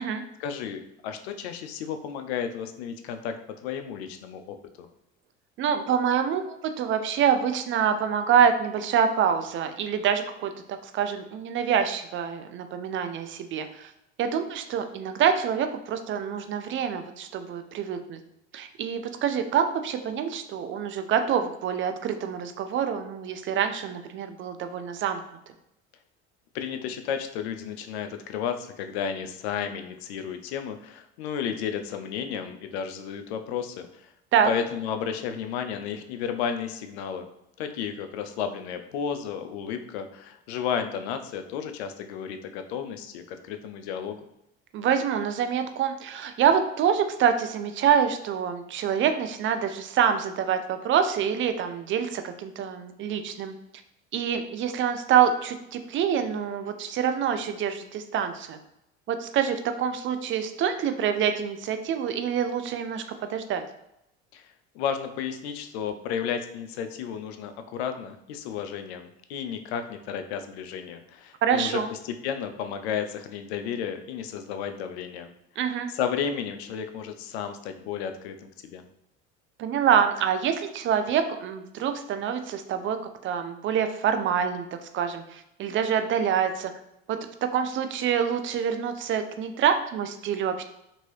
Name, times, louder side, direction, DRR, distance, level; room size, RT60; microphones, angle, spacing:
voice 1, 0.4-3.3 3.6-4.9 26.5-34.1 34.4-37.3 37.6-44.2 64.3-64.5 64.7-75.3 75.9-78.8, left 7 dB, 85° left, 7 dB, 0.5 m, -33 dB
voice 2, 5.6-13.9 14.2-18.2 18.5-25.2 34.3-34.5 44.7-53.5 54.1-58.6 59.1-63.6 71.4-71.9 75.6-75.9 79.6-83.0 83.2-84.7 84.9-86.7 87.1-87.2 87.5-90.6, right 8 dB, 40° right, 8 dB, 0.4 m, -26 dB
2.9 x 2.6 x 3.1 m, 0.83 s
hypercardioid pair, 85°, 31 cm